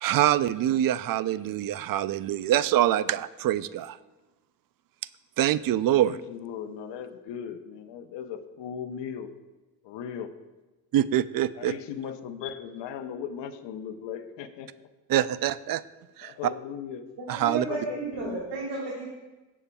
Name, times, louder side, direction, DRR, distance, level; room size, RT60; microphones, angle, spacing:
voice 1, 0.0-4.0 5.4-6.2 10.9-11.7 15.1-15.8 16.2-16.3 17.3-17.6, right 12 dB, 55° right, 16 dB, 0.5 m, -25 dB
voice 2, 6.0-9.3 9.8-10.3 11.6-14.7 16.2-17.1 17.5-18.4, left 8 dB, 75° left, 7 dB, 0.8 m, -37 dB
voice 3, 17.2-19.1, right 3 dB, 75° right, -4 dB, 2.4 m, -33 dB
17.0 x 7.2 x 2.3 m, 1.1 s
supercardioid pair, 70°, 43 cm